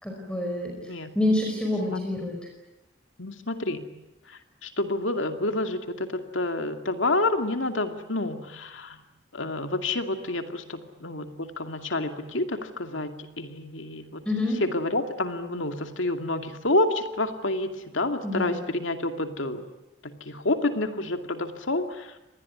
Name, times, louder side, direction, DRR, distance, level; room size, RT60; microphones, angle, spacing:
voice 1, 0.0-2.4 14.2-14.6 18.2-18.6, left 1 dB, 5° left, 1 dB, 5.1 m, -27 dB
voice 2, 3.2-3.8 4.3-9.0 9.3-14.2 14.6-19.6 20.0-22.1, left 2 dB, 70° left, 6 dB, 2.5 m, -29 dB
26.0 x 20.0 x 9.6 m, 1.0 s
head